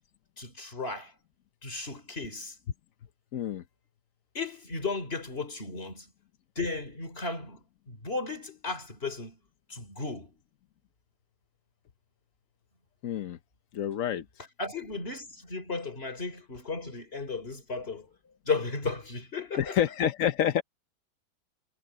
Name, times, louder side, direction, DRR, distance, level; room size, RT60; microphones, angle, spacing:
voice 1, 0.4-1.1 1.6-2.6 4.3-6.1 6.6-9.4 9.7-10.4 14.6-18.1 18.4-19.8, left 4 dB, 30° left, 3.6 m, -35 dB
voice 2, 3.3-3.6 13.0-13.4 13.7-14.2 19.6-20.6, left 10 dB, 60° left, 0.9 m, -28 dB
omnidirectional pair, 2.2 m